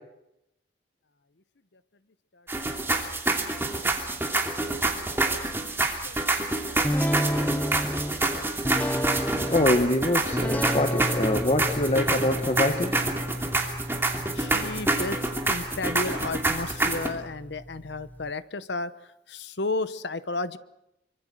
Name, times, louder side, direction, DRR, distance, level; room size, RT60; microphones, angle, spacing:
sound 1, 2.5-17.1, right 2 dB, 15° right, 2.8 m, -27 dB
voice 1, 6.1-6.8 14.1-15.2 15.5-18.9 19.3-20.6, left 3 dB, 65° left, 14 dB, 1.0 m, -33 dB
sound 2, 6.8-18.3, equal, 10° left, 1.0 m, -32 dB
voice 2, 9.5-12.9, left 1 dB, 35° left, 6 dB, 1.5 m, -24 dB
25.0 x 25.0 x 6.3 m, 0.87 s
head